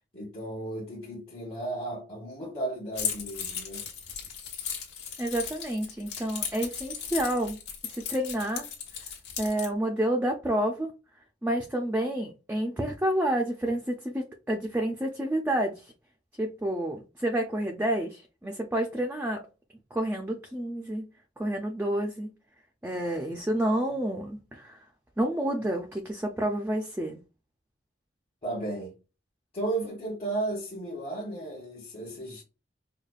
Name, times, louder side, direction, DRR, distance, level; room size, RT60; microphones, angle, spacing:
voice 1, 0.1-3.8 28.4-28.9 29.5-32.4, right 2 dB, 35° left, 0.9 m, -34 dB
Keys jangling, 2.9-9.7, left 7 dB, 70° left, 1.3 m, -36 dB
voice 2, 5.2-7.6 7.9-8.6 9.4-10.9 11.4-15.8 16.4-19.4 19.9-21.1 21.4-22.3 22.8-24.8 25.2-27.2, right 1 dB, 10° right, 0.4 m, -29 dB
4.9 x 2.2 x 2.3 m
head